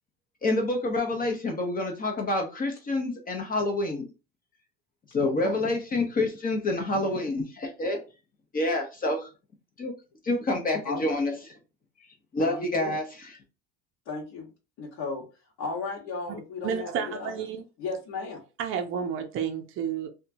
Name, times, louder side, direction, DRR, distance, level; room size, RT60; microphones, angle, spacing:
voice 1, 0.4-4.0 5.1-8.0 8.5-9.3 9.8-9.9 10.2-11.3 12.3-13.3, left 2 dB, 25° left, 0.7 m, -27 dB
voice 2, 5.2-5.6 10.8-11.2 12.4-13.0 14.0-14.5 14.8-15.2 15.6-17.3 17.8-18.4, left 3 dB, 55° left, 1.1 m, -35 dB
voice 3, 16.6-17.6 18.6-20.1, right 7 dB, 40° right, 0.5 m, -31 dB
2.8 x 2.3 x 2.6 m
cardioid pair, 120°, 32 cm